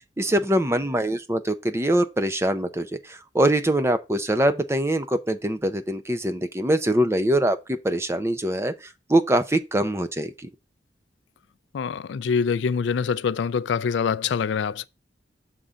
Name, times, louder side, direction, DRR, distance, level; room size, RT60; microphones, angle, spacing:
voice 1, 0.2-8.7 9.1-10.5, right 1 dB, 15° right, 0.7 m, -23 dB
voice 2, 11.7-14.9, left 6 dB, 80° left, 0.4 m, -25 dB
6.6 x 3.8 x 5.5 m
head